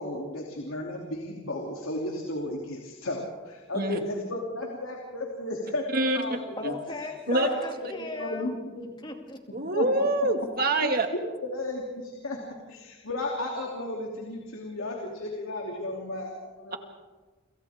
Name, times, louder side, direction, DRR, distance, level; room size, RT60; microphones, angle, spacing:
voice 1, 0.0-6.7 7.3-7.5 7.9-8.9 9.7-9.9 10.8-10.9 11.4-16.8, left 2 dB, 90° left, 0 dB, 3.1 m, -34 dB
voice 2, 3.7-4.1 5.9-6.2 6.6-6.7 7.3-7.5 9.5-11.1 16.7-16.8, right 2 dB, 45° right, 5 dB, 2.0 m, -25 dB
voice 3, 6.6-9.4, left 2 dB, 25° left, 3 dB, 2.5 m, -39 dB
29.0 x 26.5 x 3.7 m, 1.3 s
head